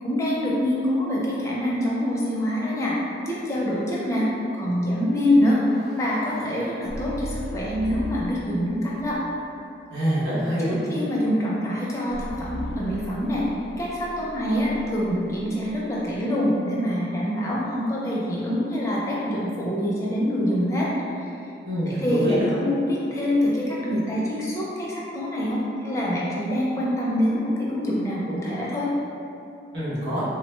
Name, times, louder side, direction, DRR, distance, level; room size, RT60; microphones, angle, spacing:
voice 1, 0.0-3.0 3.3-4.2 4.5-5.6 6.0-9.2 10.6-13.4 13.8-21.3 21.9-28.9, equal, 15° left, -6 dB, 0.5 m, -25 dB
sound 1, 5.2-8.5 9.0-9.5 12.1-16.2, equal, 75° left, 0.5 m, -38 dB
voice 2, 9.9-10.8 21.6-22.5 29.7-30.2, equal, 80° right, -10 dB, 1.0 m, -25 dB
3.3 x 2.1 x 3.1 m, 2.6 s
head